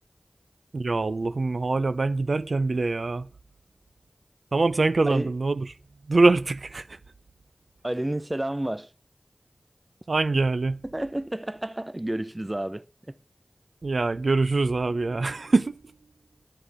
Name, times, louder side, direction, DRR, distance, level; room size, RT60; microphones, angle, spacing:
voice 1, 0.7-3.3 4.5-5.7 6.1-7.0 10.1-10.8 13.8-15.7, right 3 dB, 80° right, 0.5 m, -24 dB
voice 2, 7.8-8.9 10.8-12.8, right 1 dB, 25° right, 0.5 m, -30 dB
11.0 x 9.1 x 4.8 m
wide cardioid pair, 55°, 0 cm